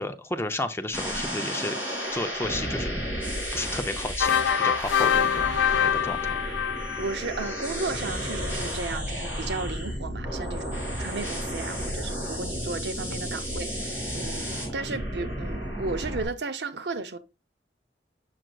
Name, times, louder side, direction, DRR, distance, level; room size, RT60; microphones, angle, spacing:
voice 1, 0.0-1.8 2.1-3.0 3.5-6.4, left 2 dB, 15° left, 0.5 m, -32 dB
sound 1, 0.9-16.3, equal, 10° right, 3.1 m, -32 dB
sound 2, 4.2-7.7, left 8 dB, 80° left, 0.3 m, -25 dB
voice 2, 7.0-17.2, right 3 dB, 70° right, 0.6 m, -34 dB
7.5 x 6.1 x 2.3 m
head